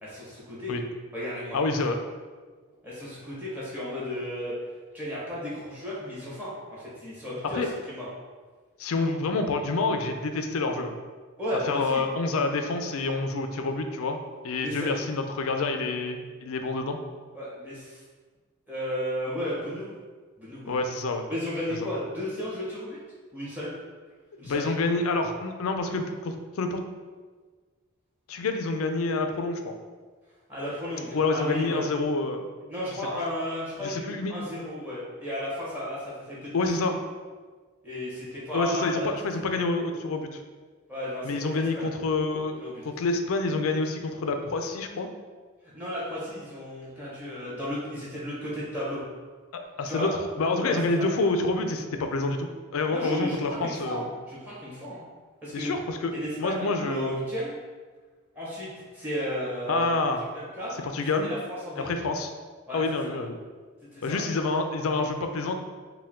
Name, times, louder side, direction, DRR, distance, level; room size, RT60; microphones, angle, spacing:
voice 1, 0.0-0.7 1.1-1.7 2.8-4.6 4.9-8.1 11.4-12.0 14.6-14.9 17.3-18.0 18.7-19.9 20.4-20.9 21.3-23.0 23.3-23.7 24.4-24.7 30.5-31.8 32.7-36.5 36.8-36.9 37.8-39.1 39.4-39.6 40.9-41.9 42.6-42.8 45.6-49.0 49.9-50.1 50.6-51.0 52.9-55.0 55.4-55.7 56.1-57.6 58.3-59.9 60.3-62.0 62.7-63.1 63.9-64.2, equal, 10° right, -7 dB, 1.1 m, -34 dB
voice 2, 1.5-2.0 7.6-7.7 8.8-10.9 11.7-14.2 14.4-17.0 20.7-21.2 24.4-26.8 28.3-29.7 31.1-32.5 33.8-34.3 36.5-37.0 38.5-40.4 41.2-45.1 49.5-50.1 50.4-54.1 55.5-57.1 59.7-60.2 60.9-61.3 61.8-62.3 62.7-63.4 64.0-65.5, left 3 dB, 75° left, 6 dB, 0.4 m, -28 dB
4.4 x 2.2 x 3.6 m, 1.4 s
head